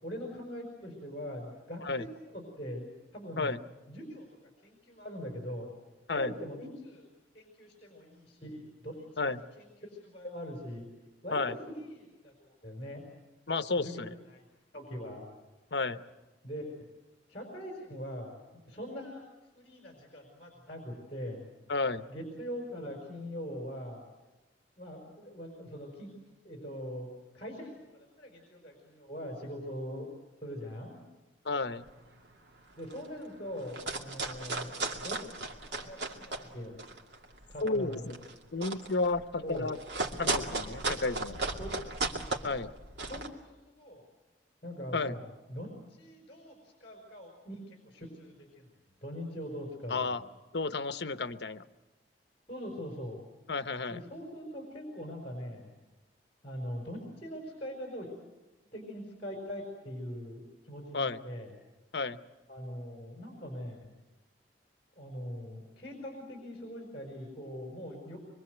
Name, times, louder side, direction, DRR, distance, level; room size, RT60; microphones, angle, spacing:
voice 1, 0.0-2.9 3.1-3.5 3.9-4.3 4.6-5.7 6.1-7.1 7.3-10.9 11.2-13.0 13.8-14.4 14.7-15.3 16.4-16.8 17.3-18.4 18.7-19.3 19.5-21.4 22.1-24.0 24.8-26.1 26.4-27.1 27.3-30.1 30.4-31.0 32.8-34.7 35.0-36.8 37.5-38.2 39.4-39.7 41.6-42.0 42.3-42.6 43.1-44.0 44.6-48.7 49.0-50.2 52.5-53.2 53.9-55.7 56.4-58.2 58.7-61.5 62.5-63.9 64.9-68.2, equal, 35° left, 1 dB, 5.1 m, -42 dB
voice 2, 13.5-14.1 15.7-16.0 21.7-22.0 31.4-31.9 37.6-38.2 38.5-39.8 40.2-41.4 42.4-42.7 44.9-45.2 49.9-50.2 50.5-51.6 53.5-54.0 60.9-61.2 61.9-62.2, left 3 dB, 70° left, 11 dB, 0.9 m, -32 dB
sound 1, 31.8-32.1 32.5-32.6 32.8-33.2 33.6-36.5 36.8-43.3, right 3 dB, 75° right, 2.4 m, -36 dB
25.0 x 23.5 x 8.0 m, 1.1 s
head